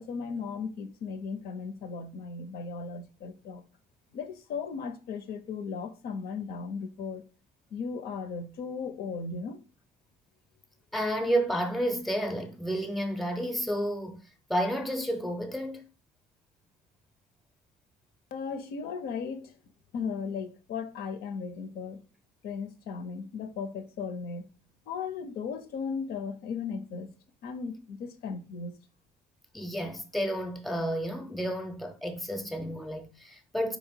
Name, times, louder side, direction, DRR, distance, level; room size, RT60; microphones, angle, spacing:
voice 1, 0.0-3.6 4.1-7.2 7.7-9.6 18.3-19.6 19.9-22.0 22.4-24.4 24.9-27.1 27.4-28.7, left 5 dB, 70° left, 0.6 m, -36 dB
voice 2, 10.9-14.2 14.5-15.8 29.5-33.8, equal, ahead, 0.6 m, -31 dB
4.2 x 2.9 x 4.3 m
cardioid pair, 110°, 17 cm